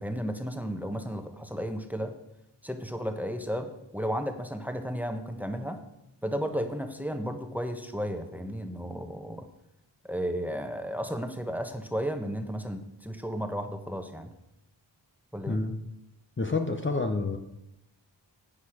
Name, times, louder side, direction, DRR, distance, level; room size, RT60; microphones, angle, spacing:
voice 1, 0.0-2.1 2.6-5.8 6.2-9.5 10.0-14.3 15.3-15.6, equal, 5° right, 6 dB, 1.2 m, -33 dB
voice 2, 15.5-15.8 16.4-17.4, left 3 dB, 25° left, 5 dB, 0.9 m, -28 dB
10.5 x 8.5 x 4.9 m, 0.89 s
cardioid pair, 50°, 46 cm